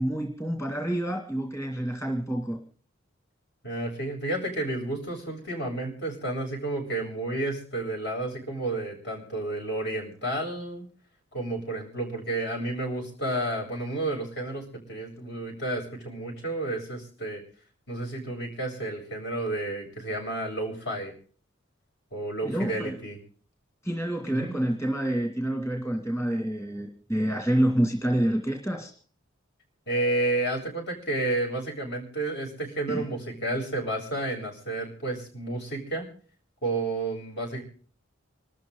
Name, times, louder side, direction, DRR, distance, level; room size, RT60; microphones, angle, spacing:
voice 1, 0.0-2.6 22.4-23.0 23.8-28.9 32.9-33.1, right 1 dB, 15° left, 3 dB, 2.3 m, -28 dB
voice 2, 3.6-10.8 11.3-17.4 17.9-21.1 22.1-23.2 24.3-24.5 29.9-36.1 36.6-37.6, right 2 dB, 60° left, 1 dB, 7.7 m, -31 dB
26.5 x 13.5 x 3.8 m, 0.44 s
head